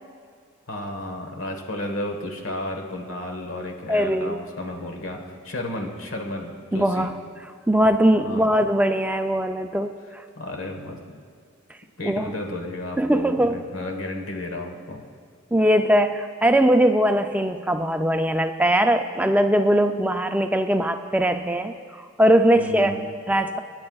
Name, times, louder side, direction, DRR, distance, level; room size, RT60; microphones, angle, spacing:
voice 1, 0.7-7.1 8.2-8.5 10.4-11.0 12.0-15.0 22.6-23.1, left 1 dB, 75° left, 2 dB, 1.4 m, -32 dB
voice 2, 3.9-4.4 6.7-7.1 7.7-10.2 12.0-12.3 13.0-13.6 15.5-22.9 23.3-23.6, equal, 5° right, 7 dB, 0.4 m, -21 dB
25.5 x 9.7 x 2.4 m, 2.1 s
head